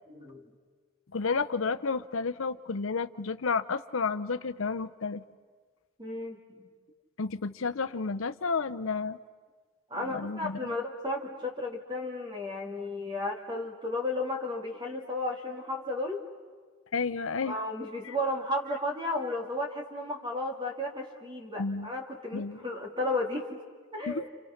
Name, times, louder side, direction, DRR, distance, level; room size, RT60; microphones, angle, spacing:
voice 1, 0.1-0.4 6.0-6.6 9.9-16.2 17.5-23.6 23.9-24.3, left 2 dB, 20° right, 2 dB, 2.5 m, -33 dB
voice 2, 1.1-5.2 7.2-9.2 10.1-10.7 16.9-17.6 18.0-18.1 21.6-21.9 22.3-22.6 24.1-24.2, left 4 dB, 80° left, 11 dB, 0.7 m, -31 dB
30.0 x 29.0 x 5.8 m, 1.5 s
head